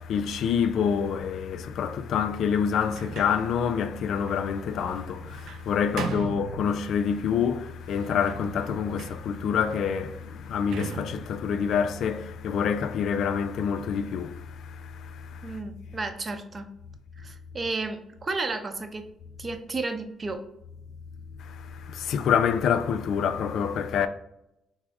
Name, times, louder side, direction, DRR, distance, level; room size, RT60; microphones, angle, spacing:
voice 1, 0.0-15.6 21.4-24.1, left 7 dB, 75° left, 0.3 m, -27 dB
Sliding door, 2.7-7.2 7.8-12.7, right 6 dB, 75° right, 0.3 m, -41 dB
voice 2, 15.4-16.7 17.2-19.1 19.4-20.4, right 3 dB, 35° right, 0.6 m, -33 dB
5.8 x 2.0 x 3.5 m
cardioid pair, 90°, 0 cm